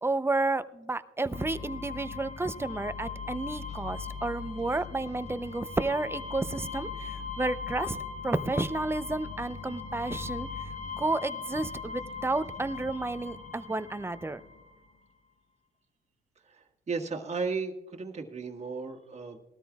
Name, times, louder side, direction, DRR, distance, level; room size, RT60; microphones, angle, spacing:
voice 1, 0.0-8.0 8.2-10.5 11.0-14.4, right 2 dB, 10° right, 12 dB, 0.6 m, -31 dB
sound 1, 1.3-14.7, left 5 dB, 35° left, 1.3 m, -39 dB
voice 2, 16.5-19.4, right 4 dB, 35° right, 1 dB, 1.7 m, -35 dB
20.0 x 13.0 x 2.4 m, 1.1 s
cardioid pair, 90°, 20 cm